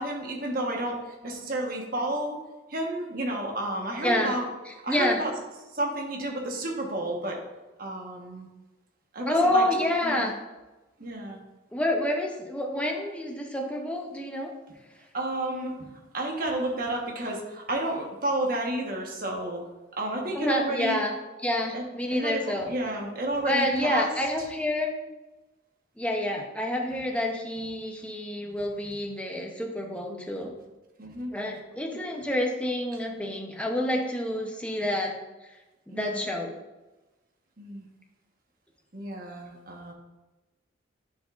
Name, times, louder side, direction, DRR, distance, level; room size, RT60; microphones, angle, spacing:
voice 1, 0.0-2.4 2.7-4.4 4.8-5.3 5.7-7.4 7.8-8.5 9.1-9.6 10.0-10.3 11.0-11.4 14.7-14.8 15.1-19.6 20.0-21.0 21.7-21.8 22.1-24.1 31.0-31.3 35.9-36.2 37.6-37.8 38.9-39.9, right 1 dB, 45° right, 0 dB, 1.1 m, -31 dB
voice 2, 4.0-4.4 4.7-5.2 9.2-10.3 11.7-14.5 20.3-21.1 21.4-22.7 23.5-24.9 26.0-30.5 31.3-35.2 35.9-36.6, left 1 dB, 5° left, 1 dB, 0.6 m, -28 dB
9.9 x 4.7 x 2.5 m, 1.1 s
head